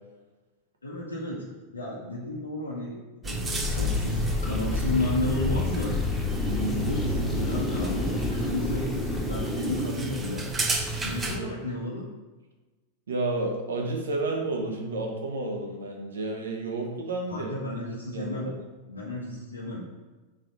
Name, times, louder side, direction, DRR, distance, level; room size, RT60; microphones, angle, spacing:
voice 1, 0.8-1.4 1.7-6.0 6.7-10.5 11.0-12.0 17.3-18.5 18.9-19.8, left 2 dB, 80° left, -4 dB, 0.9 m, -33 dB
sound 1, 3.2-11.4, right 1 dB, 20° right, 0.8 m, -31 dB
sound 2, 3.6-9.9, left 3 dB, 15° left, 1.5 m, -30 dB
voice 2, 6.4-6.8 11.2-11.5 13.1-17.5 18.1-18.5, right 2 dB, 70° right, 1 dB, 1.1 m, -31 dB
4.5 x 4.3 x 5.3 m, 1.2 s
figure-of-eight pair, 90°, 0 cm